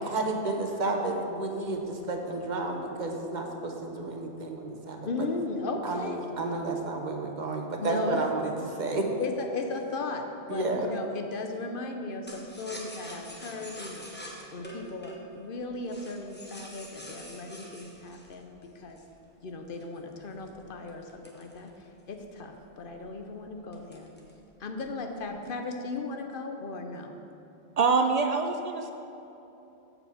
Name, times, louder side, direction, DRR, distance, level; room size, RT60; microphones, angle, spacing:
voice 1, 0.1-5.1 5.8-9.1 10.5-10.9, right 2 dB, 45° right, 2 dB, 0.9 m, -31 dB
voice 2, 5.0-6.2 7.8-8.2 8.8-8.9 9.2-14.1 14.5-19.0 19.4-21.7 22.1-24.1 24.6-27.2, left 3 dB, 55° left, 4 dB, 0.8 m, -36 dB
sound 1, 12.3-19.2 19.7-22.2 22.5-22.6 22.9-23.3 23.7-24.4 24.7-25.3, equal, 10° left, 0.9 m, -45 dB
voice 3, 27.8-28.9, right 4 dB, 70° right, 6 dB, 0.3 m, -25 dB
7.0 x 5.5 x 7.2 m, 2.9 s
omnidirectional pair, 1.2 m